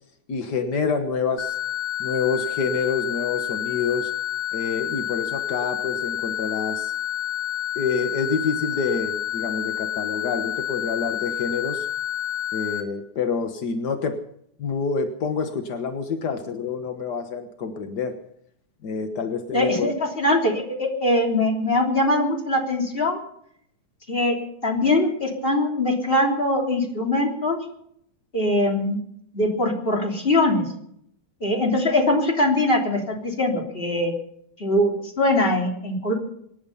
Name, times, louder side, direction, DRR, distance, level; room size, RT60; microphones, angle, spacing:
voice 1, 0.3-1.6 2.0-4.1 4.5-6.9 7.7-11.9 12.5-14.2 14.6-18.1 18.8-19.9, left 5 dB, 75° left, 7 dB, 0.9 m, -27 dB
sound 1, 1.4-12.8, left 12 dB, 55° left, 2.9 m, -29 dB
voice 2, 19.5-23.2 24.1-24.4 24.6-27.6 28.3-29.0 29.3-30.6 31.4-34.1 34.6-36.1, left 1 dB, 15° left, 1 dB, 3.2 m, -22 dB
25.0 x 10.5 x 5.5 m, 0.70 s
omnidirectional pair, 3.8 m